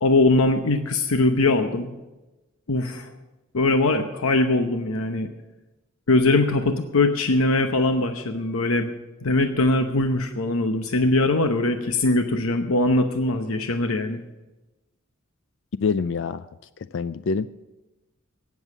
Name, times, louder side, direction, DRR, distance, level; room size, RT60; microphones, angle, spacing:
voice 1, 0.0-1.9 2.7-3.1 3.5-5.3 6.1-8.9 9.2-14.2, left 2 dB, 90° left, 6 dB, 0.9 m, -21 dB
voice 2, 15.8-16.4 16.9-17.5, left 5 dB, 60° left, 14 dB, 0.4 m, -25 dB
18.0 x 7.2 x 7.2 m, 1.1 s
head